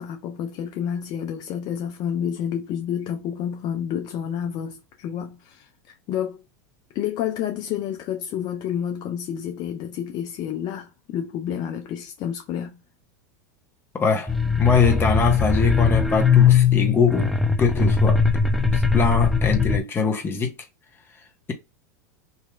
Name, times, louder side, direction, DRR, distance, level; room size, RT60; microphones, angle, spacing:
voice 1, 0.0-6.4 6.9-12.8, left 9 dB, 45° left, 0.6 m, -29 dB
voice 2, 13.9-17.3 17.6-18.4 18.7-20.5, left 5 dB, 25° left, 0.9 m, -22 dB
sound 1, 14.3-19.8, left 6 dB, ahead, 0.4 m, -20 dB
3.0 x 2.7 x 2.3 m
hypercardioid pair, 100°, 10 cm